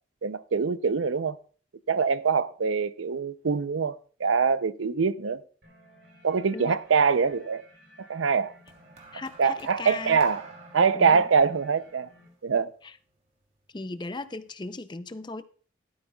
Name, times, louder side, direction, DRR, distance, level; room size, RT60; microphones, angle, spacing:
voice 1, 0.2-1.4 1.9-3.9 4.2-5.4 6.2-7.6 8.0-8.5 9.4-10.4 10.7-12.1 12.4-12.7, right 5 dB, 85° right, 0.6 m, -24 dB
sound 1, 5.6-12.3, equal, 60° right, 3.7 m, -56 dB
sound 2, 8.7-13.1 14.0-14.3, right 3 dB, 35° right, 2.8 m, -51 dB
voice 2, 9.1-10.2 10.9-11.3 12.8-13.0 13.7-15.4, left 3 dB, 20° left, 0.5 m, -37 dB
15.0 x 12.5 x 2.3 m
head